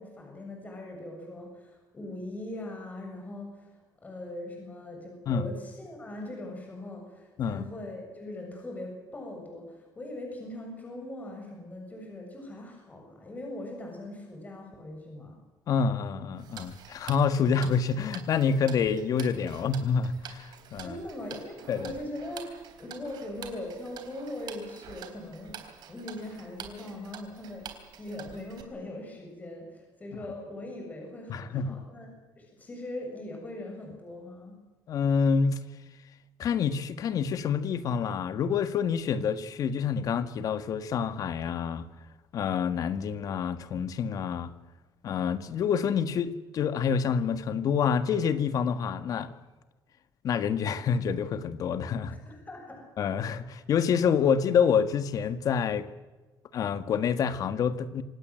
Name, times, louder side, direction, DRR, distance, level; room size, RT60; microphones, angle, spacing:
voice 1, 0.0-15.4 20.8-34.6 52.1-52.9, left 1 dB, 20° left, 1 dB, 7.1 m, -41 dB
voice 2, 15.7-21.0 21.7-21.9 31.3-31.8 34.9-35.6 36.4-41.8 42.3-44.5 45.0-49.3 50.2-52.2 53.0-55.9 56.5-58.0, left 6 dB, 50° left, 11 dB, 1.7 m, -27 dB
Tick-tock, 16.4-28.6, right 9 dB, 70° right, 3.6 m, -47 dB
26.0 x 18.0 x 7.8 m, 1.2 s
cardioid pair, 145°, 8 cm